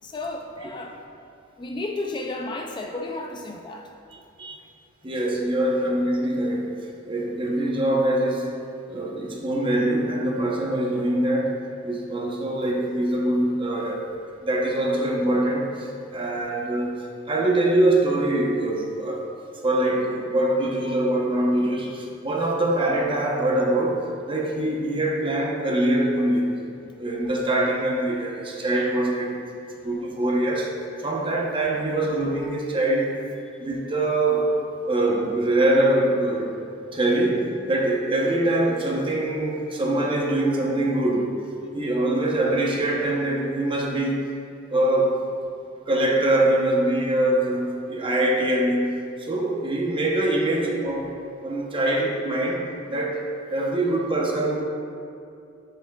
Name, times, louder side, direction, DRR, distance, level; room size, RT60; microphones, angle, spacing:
voice 1, 0.0-1.0 1.6-3.9, left 2 dB, 25° left, 2 dB, 0.3 m, -32 dB
voice 2, 5.0-8.6 8.9-14.1 14.4-19.3 19.6-26.6 27.0-29.4 29.8-30.7 31.0-33.2 33.6-34.5 34.9-36.5 36.9-41.4 41.7-44.3 44.7-45.2 45.9-51.1 51.4-54.6, right 1 dB, 25° right, -1 dB, 0.8 m, -23 dB
7.4 x 7.4 x 2.3 m, 2.6 s
head